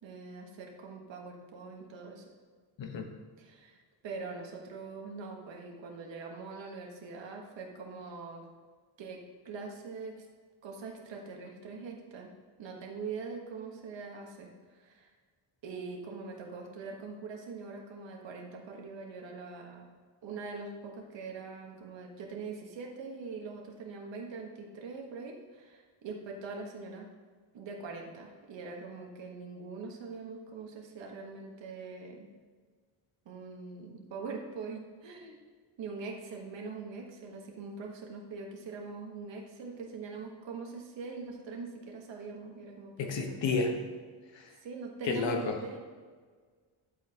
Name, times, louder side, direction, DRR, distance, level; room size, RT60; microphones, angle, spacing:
voice 1, 0.0-2.2 3.4-8.5 9.0-10.3 10.6-12.3 12.6-15.1 15.6-19.9 20.2-27.1 27.5-32.3 33.2-35.4 35.8-43.8 44.6-45.8, right 4 dB, 60° right, 0 dB, 1.4 m, -43 dB
voice 2, 43.0-43.7 44.3-44.5 45.1-45.6, left 4 dB, 60° left, 4 dB, 1.3 m, -31 dB
10.0 x 8.3 x 2.9 m, 1.5 s
wide cardioid pair, 160°, 49 cm